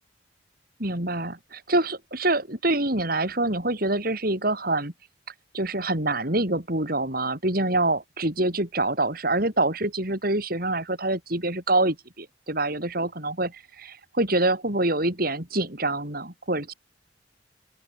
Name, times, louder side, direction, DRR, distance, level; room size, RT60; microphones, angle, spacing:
voice 1, 0.8-4.9 5.5-16.7, right 2 dB, 50° right, 4.8 m, -26 dB
open air
head